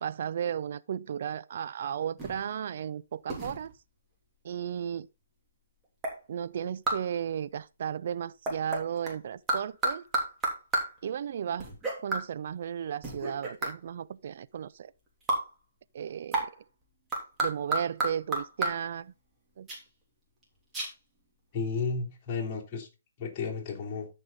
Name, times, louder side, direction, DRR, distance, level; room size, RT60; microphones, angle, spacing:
voice 1, 0.0-3.7 4.4-5.1 6.3-10.0 11.0-11.7 12.0-14.9 15.9-16.5 17.4-19.1 19.6-19.7, right 8 dB, 50° right, 0.5 m, -34 dB
sound 1, 2.2-2.5 3.3-3.7 6.0-6.2 6.9-7.1 8.5-9.1 9.5-11.0 11.6-12.3 13.0-13.8 15.3-15.5 16.3-16.6 17.1-18.8 19.7-19.8 20.4-20.5 20.7-20.9, right 1 dB, 15° right, 3.1 m, -31 dB
voice 2, 21.5-22.9 23.2-24.1, left 4 dB, 30° left, 3.2 m, -33 dB
13.0 x 5.5 x 4.0 m
figure-of-eight pair, 140°, 0 cm